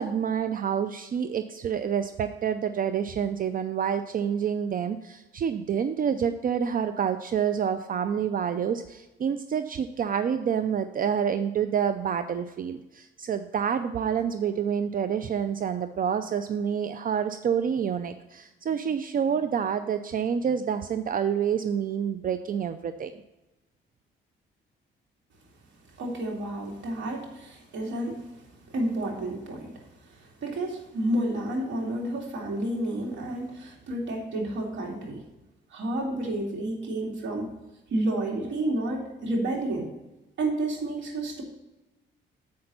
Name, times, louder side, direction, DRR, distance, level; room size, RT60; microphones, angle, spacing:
voice 1, 0.0-23.1, right 8 dB, 45° right, 10 dB, 0.5 m, -28 dB
voice 2, 25.9-35.2 35.7-37.5 37.9-39.9 40.4-41.4, right 1 dB, 65° right, -1 dB, 2.6 m, -30 dB
7.6 x 6.0 x 5.4 m, 1.0 s
cardioid pair, 90°, 20 cm